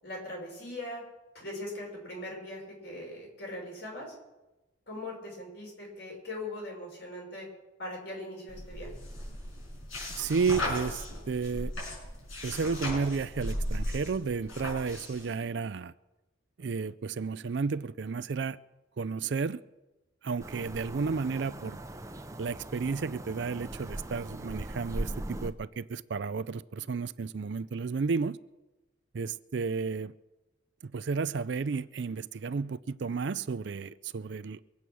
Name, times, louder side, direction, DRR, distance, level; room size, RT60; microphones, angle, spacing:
voice 1, 0.0-1.0 1.3-4.1 4.9-7.5 7.8-8.9, left 1 dB, 55° left, 5.7 m, -40 dB
sound 1, 8.5-15.3, left 1 dB, 90° left, 5.9 m, -37 dB
voice 2, 10.1-11.7 12.4-15.9 16.6-18.6 19.0-19.6 20.2-21.8 22.4-28.4 29.1-30.1 30.8-34.7, right 5 dB, 60° right, 0.4 m, -32 dB
sound 2, 20.4-25.5, right 1 dB, 15° right, 0.6 m, -40 dB
23.5 x 8.4 x 6.2 m
head